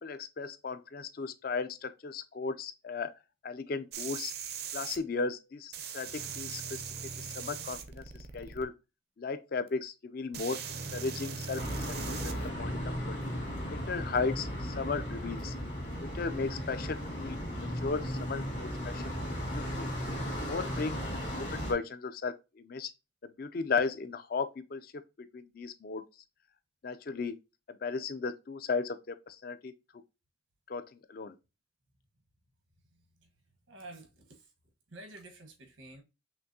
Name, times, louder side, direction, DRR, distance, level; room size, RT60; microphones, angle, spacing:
voice 1, 0.0-3.1 3.4-4.3 4.7-6.8 7.2-8.7 9.2-13.2 13.7-15.5 16.0-19.9 20.5-22.9 23.2-25.0 25.3-26.1 26.8-27.4 27.7-29.7 30.7-31.3, left 4 dB, 50° left, 0.4 m, -36 dB
sound 1, 3.9-5.0 5.7-8.6 9.7-9.8 10.3-12.5 14.2-14.3, right 6 dB, 55° right, 0.5 m, -40 dB
sound 2, 11.6-21.7, equal, 65° left, 1.8 m, -36 dB
voice 2, 33.7-34.5 34.9-36.0, right 2 dB, 85° right, 1.3 m, -49 dB
5.9 x 2.6 x 2.7 m
head